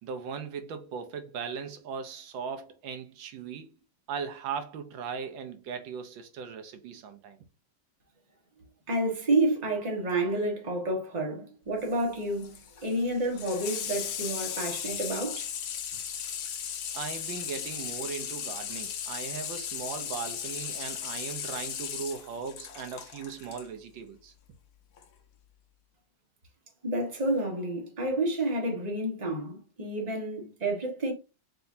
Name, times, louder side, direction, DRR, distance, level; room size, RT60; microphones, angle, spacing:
voice 1, 0.0-3.7 4.1-7.4 16.9-24.3, right 6 dB, 80° right, 1.4 m, -38 dB
voice 2, 8.9-15.5 26.8-31.1, right 1 dB, 25° right, 1.2 m, -29 dB
Water tap faucet / Sink (filling or washing), 11.8-23.7 25.0-25.1, left 8 dB, 65° left, 1.1 m, -37 dB
4.5 x 3.9 x 2.6 m
omnidirectional pair, 2.1 m